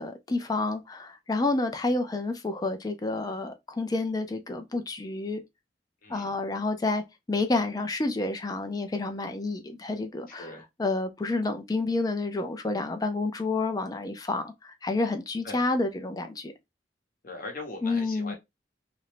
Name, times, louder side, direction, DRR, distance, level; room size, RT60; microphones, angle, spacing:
voice 1, 0.0-5.4 6.1-7.0 7.3-10.5 10.8-16.5 17.8-18.3, left 3 dB, 20° left, 0.4 m, -29 dB
voice 2, 6.0-6.3 10.3-10.6 15.4-15.6 17.2-18.4, left 2 dB, 50° left, 0.9 m, -40 dB
2.5 x 2.0 x 3.0 m
head